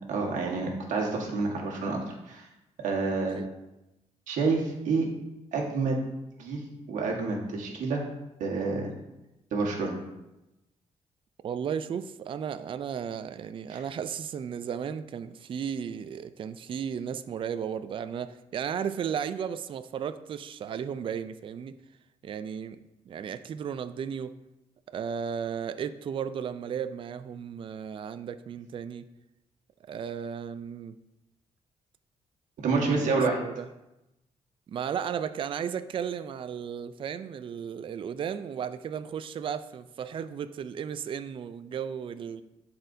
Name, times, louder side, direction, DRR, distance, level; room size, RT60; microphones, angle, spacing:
voice 1, 0.1-2.5 2.8-3.4 4.3-5.1 5.5-6.0 6.4-8.0 8.4-8.9 9.5-9.9 13.7-13.8 32.6-33.4, right 4 dB, 90° right, 0 dB, 1.4 m, -28 dB
voice 2, 11.4-21.7 22.2-22.8 23.1-24.3 24.9-29.1 29.9-30.9 32.7-33.7 34.7-42.4, right 8 dB, 45° right, 12 dB, 0.3 m, -34 dB
11.5 x 4.2 x 2.6 m, 0.96 s
cardioid pair, 110°, 13 cm